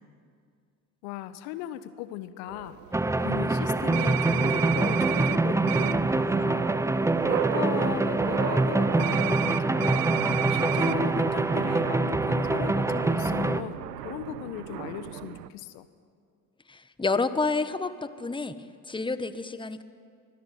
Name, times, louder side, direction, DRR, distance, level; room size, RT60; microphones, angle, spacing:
voice 1, 1.0-2.8 3.2-6.7 7.2-10.1 10.5-15.9, left 13 dB, 65° left, 13 dB, 1.3 m, -37 dB
sound 1, 2.5-15.5, right 12 dB, 85° right, 0.9 m, -35 dB
sound 2, 2.9-13.6, right 2 dB, 5° right, 0.8 m, -25 dB
sound 3, 3.9-5.4 5.7-5.9 9.0-10.9, right 18 dB, 60° right, 1.0 m, -31 dB
voice 2, 16.7-18.5 18.9-19.8, left 3 dB, 10° left, 12 dB, 1.4 m, -29 dB
24.5 x 21.0 x 9.3 m, 2.2 s
hypercardioid pair, 60°, 47 cm